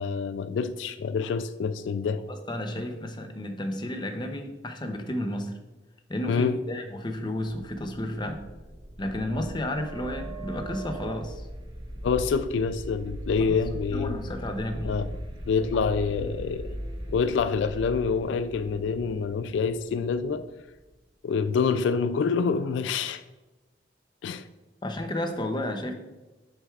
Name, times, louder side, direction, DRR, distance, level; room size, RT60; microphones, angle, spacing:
voice 1, 0.0-2.2 6.3-6.6 12.0-14.2 14.8-15.1 15.5-16.8 17.1-20.5 21.2-23.2 24.2-24.4, left 5 dB, 75° left, 0.3 m, -26 dB
voice 2, 2.3-5.5 6.1-8.4 9.0-11.5 13.4-13.6 13.9-15.0 24.8-25.9, left 1 dB, 25° left, 0.6 m, -32 dB
sound 1, 7.7-20.9, right 1 dB, 25° right, 0.7 m, -39 dB
7.5 x 6.6 x 2.4 m
head